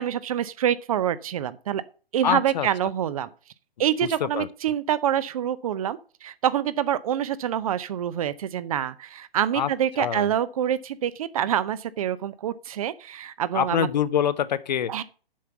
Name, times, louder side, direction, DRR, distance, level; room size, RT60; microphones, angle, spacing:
voice 1, 0.0-1.8 2.1-3.3 3.8-13.9 14.9-15.0, right 10 dB, 35° right, 0.6 m, -26 dB
voice 2, 2.2-2.7 4.2-4.5 9.5-9.7 10.0-10.3 13.5-15.0, left 9 dB, 45° left, 0.6 m, -25 dB
7.4 x 5.7 x 6.9 m
figure-of-eight pair, 125°, 30 cm